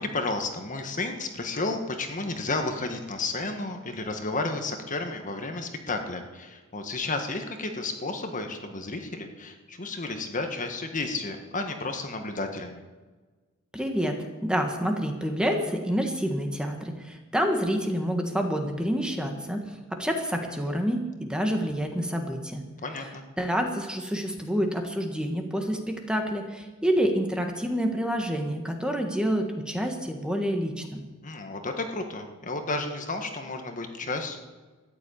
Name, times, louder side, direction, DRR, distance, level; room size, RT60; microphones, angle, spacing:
voice 1, 0.0-12.8 22.8-23.2 31.2-34.4, left 3 dB, 40° left, 5 dB, 1.5 m, -32 dB
voice 2, 13.7-22.6 23.4-31.0, equal, 5° right, 3 dB, 1.5 m, -28 dB
14.0 x 10.5 x 8.6 m, 1.3 s
head